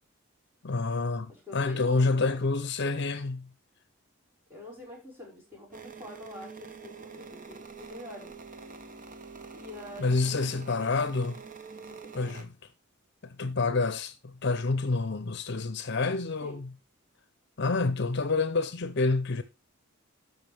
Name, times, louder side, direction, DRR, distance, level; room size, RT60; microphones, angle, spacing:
voice 1, 0.6-3.5 10.0-11.4 12.1-12.5 13.2-16.7 17.6-19.4, left 3 dB, 55° left, 0.7 m, -28 dB
voice 2, 1.3-2.4 4.5-8.3 9.5-10.5 11.7-12.4 16.4-16.6, left 2 dB, 10° right, 5.3 m, -46 dB
sound 1, 5.7-12.4, right 5 dB, 40° right, 0.9 m, -46 dB
12.5 x 5.6 x 3.5 m
head